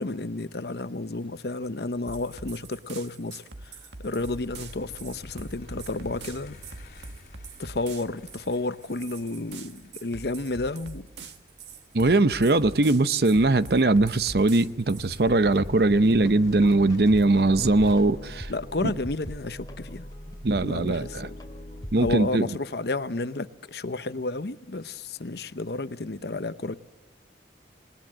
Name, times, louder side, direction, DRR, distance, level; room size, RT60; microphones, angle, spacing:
voice 1, 0.0-3.4 4.0-6.6 7.6-11.1 18.5-20.0 20.6-21.3 22.0-26.8, left 2 dB, 65° left, 0.9 m, -31 dB
sound 1, 2.1-15.2, right 4 dB, 80° right, 1.7 m, -43 dB
sound 2, 4.2-21.1, left 1 dB, 45° left, 4.3 m, -48 dB
voice 2, 11.9-18.5 18.8-18.9 20.4-21.3 21.9-22.5, right 2 dB, 60° right, 0.7 m, -21 dB
sound 3, 15.4-22.1, equal, 20° left, 2.6 m, -41 dB
27.5 x 19.0 x 7.6 m
head